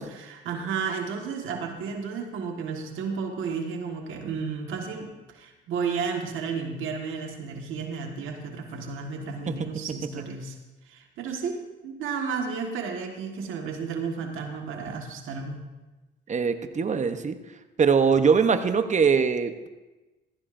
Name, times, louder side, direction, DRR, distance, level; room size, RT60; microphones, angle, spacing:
voice 1, 0.0-10.5 10.9-15.6, right 5 dB, 90° right, 2 dB, 1.7 m, -32 dB
voice 2, 16.3-17.4 17.8-19.7, right 6 dB, 35° right, 9 dB, 0.9 m, -22 dB
15.5 x 15.0 x 2.6 m, 1.1 s
cardioid pair, 90°, 20 cm